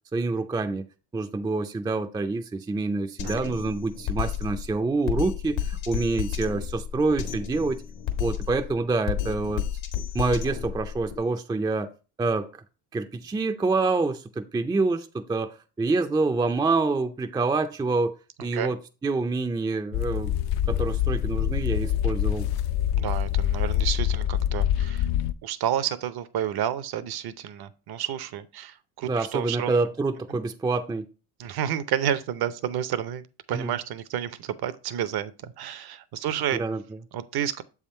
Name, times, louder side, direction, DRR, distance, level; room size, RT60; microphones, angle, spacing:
voice 1, 0.1-0.9 1.1-7.8 8.2-9.6 10.1-11.9 12.2-12.6 12.9-18.1 18.4-20.3 20.7-22.5 29.0-31.0 33.5-33.7 36.5-37.0, right 3 dB, 10° right, 0.4 m, -27 dB
Drum kit, 3.2-11.2, left 9 dB, 70° left, 1.3 m, -32 dB
voice 2, 3.2-3.5 18.4-18.7 22.9-25.1 25.4-29.7 31.4-36.6 37.1-37.6, right 10 dB, 55° right, 0.7 m, -30 dB
sound 1, 19.9-25.3, left 11 dB, 55° left, 0.5 m, -25 dB
7.1 x 3.6 x 4.3 m
supercardioid pair, 90°, 47 cm